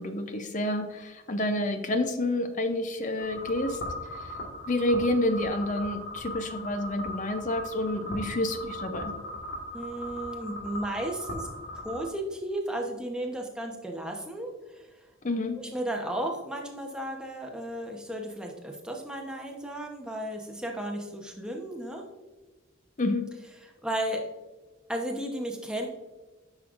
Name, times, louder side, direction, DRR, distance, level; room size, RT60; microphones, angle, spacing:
voice 1, 0.0-3.8 4.1-4.3 4.7-9.1 15.2-15.6 23.0-23.3, left 1 dB, 35° left, 8 dB, 0.6 m, -29 dB
sound 1, 3.2-12.1, left 1 dB, 55° left, 1.6 m, -38 dB
voice 2, 9.7-11.5 11.7-14.9 15.6-22.1 23.6-24.2 24.9-25.9, right 1 dB, 5° right, 1 dB, 0.9 m, -34 dB
9.7 x 6.2 x 2.5 m, 1.2 s
head